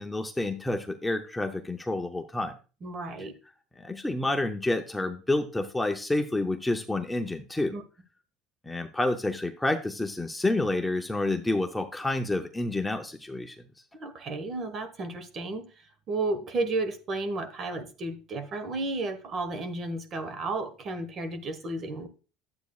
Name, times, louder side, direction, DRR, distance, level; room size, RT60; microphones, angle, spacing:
voice 1, 0.0-2.5 3.8-7.7 8.6-13.6, left 2 dB, 5° left, 0.7 m, -29 dB
voice 2, 2.8-3.3 7.7-7.8 13.9-15.7 16.1-22.1, right 2 dB, 40° right, 1.3 m, -33 dB
11.5 x 8.1 x 2.3 m
cardioid pair, 125°, 0 cm